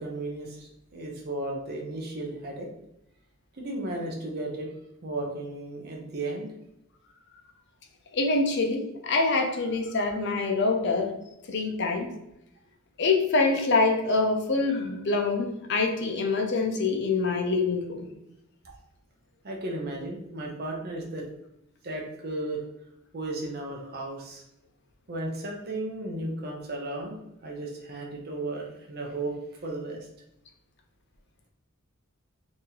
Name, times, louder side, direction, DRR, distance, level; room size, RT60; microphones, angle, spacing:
voice 1, 0.0-2.7 3.6-4.7 5.0-6.5 18.6-18.8 19.4-21.3 21.8-22.6 23.1-24.4 25.1-29.4 29.6-30.1, right 2 dB, 50° right, 0 dB, 0.6 m, -34 dB
voice 2, 8.1-11.1 11.5-12.1 13.0-18.1, left 3 dB, 60° left, 4 dB, 0.6 m, -25 dB
3.0 x 2.7 x 3.8 m, 0.84 s
head